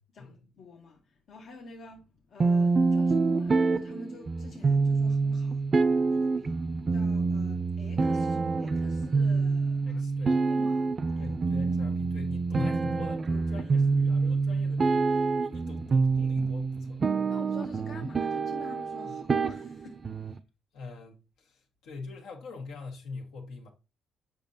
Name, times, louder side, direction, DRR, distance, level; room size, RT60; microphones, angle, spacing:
voice 1, 0.1-6.6 6.9-11.3 17.3-20.0, left 3 dB, 65° left, 1.0 m, -48 dB
sound 1, 2.4-20.4, right 4 dB, 40° right, 0.5 m, -27 dB
voice 2, 9.8-10.4 11.2-17.0 19.0-19.1 20.7-23.7, left 4 dB, 90° left, 1.6 m, -42 dB
7.0 x 5.3 x 2.7 m
cardioid pair, 90°, 0 cm